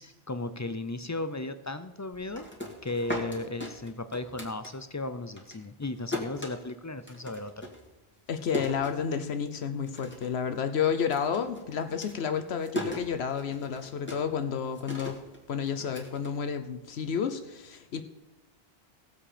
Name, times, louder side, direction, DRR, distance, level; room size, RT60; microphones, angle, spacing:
voice 1, 0.0-2.5 2.8-7.7, left 2 dB, 30° left, 11 dB, 0.3 m, -35 dB
sound 1, 2.1-5.1 5.4-9.5 9.8-10.4 10.7-16.9, left 1 dB, 10° left, 2.0 m, -39 dB
voice 2, 8.3-15.2 15.5-18.0, left 7 dB, 75° left, 9 dB, 1.0 m, -31 dB
18.0 x 7.5 x 5.0 m, 1.0 s
omnidirectional pair, 1.1 m